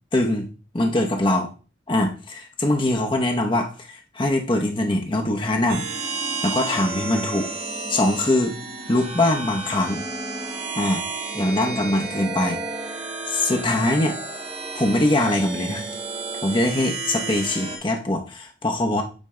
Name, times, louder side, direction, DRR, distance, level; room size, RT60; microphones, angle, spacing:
voice 1, 0.1-1.5 1.9-5.9 6.4-7.5 7.9-8.5 8.9-10.0 10.7-11.0 11.3-12.6 13.3-14.2 14.7-15.9 16.4-19.0, left 1 dB, 25° left, 2 dB, 0.8 m, -22 dB
sound 1, 5.7-17.8, right 3 dB, 30° right, 1.5 m, -31 dB
8.8 x 3.3 x 3.7 m, 0.34 s
head